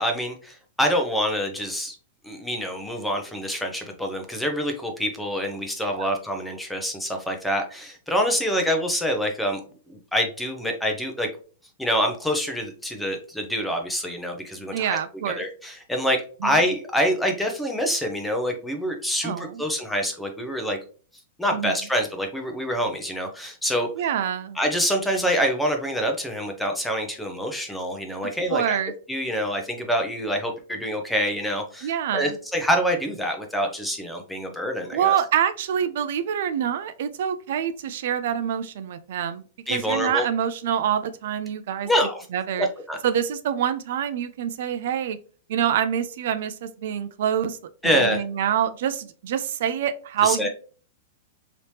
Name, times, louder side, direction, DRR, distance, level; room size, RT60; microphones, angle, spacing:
voice 1, 0.0-2.0 2.2-9.6 9.9-11.3 11.8-15.0 15.3-20.8 21.4-23.9 24.6-28.8 29.1-35.1 39.7-40.3 41.9-42.3 42.6-43.0 47.8-48.2 50.2-50.5, equal, 5° left, 3 dB, 0.6 m, -26 dB
voice 2, 14.7-15.4 16.4-16.6 19.2-19.6 21.5-21.7 24.0-24.6 28.2-28.9 31.8-32.3 34.9-39.4 39.7-41.9 42.3-42.7 43.0-45.2 45.5-47.6 47.8-50.5, right 9 dB, 65° right, 11 dB, 0.3 m, -26 dB
3.3 x 2.9 x 2.8 m, 0.39 s
hypercardioid pair, 150°, 0 cm